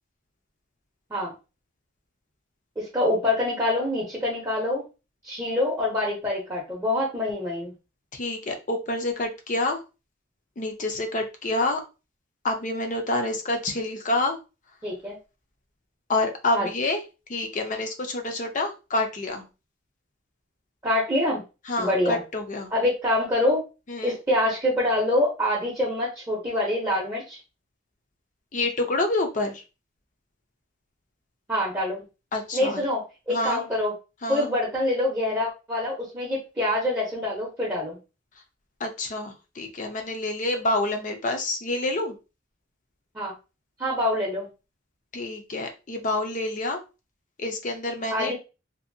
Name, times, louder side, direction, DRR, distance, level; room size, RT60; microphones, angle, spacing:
voice 1, 2.8-4.8 5.2-7.7 14.8-15.2 16.5-16.7 20.8-21.4 21.8-22.2 22.7-23.6 24.0-27.4 31.5-32.0 32.5-33.9 34.3-38.0 43.1-43.3 43.8-44.5 48.1-48.4, left 1 dB, 15° right, -4 dB, 0.7 m, -25 dB
voice 2, 8.1-9.8 10.6-11.8 12.4-14.4 16.1-17.0 17.3-19.5 21.7-22.7 23.9-24.2 28.5-29.6 32.3-32.9 33.3-33.6 34.2-34.5 38.8-42.2 45.1-46.8 47.4-48.4, left 2 dB, 40° left, 5 dB, 0.5 m, -28 dB
2.7 x 2.5 x 2.6 m, 0.30 s
head